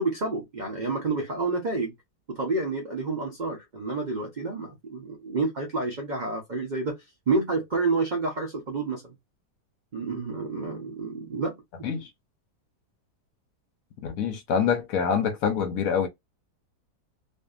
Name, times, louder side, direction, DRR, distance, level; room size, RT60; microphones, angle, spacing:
voice 1, 0.0-1.9 2.3-7.0 7.3-9.1 9.9-11.9, right 3 dB, 75° right, 0.4 m, -29 dB
voice 2, 14.0-16.1, left 7 dB, 70° left, 0.8 m, -25 dB
2.6 x 2.5 x 2.3 m
omnidirectional pair, 1.8 m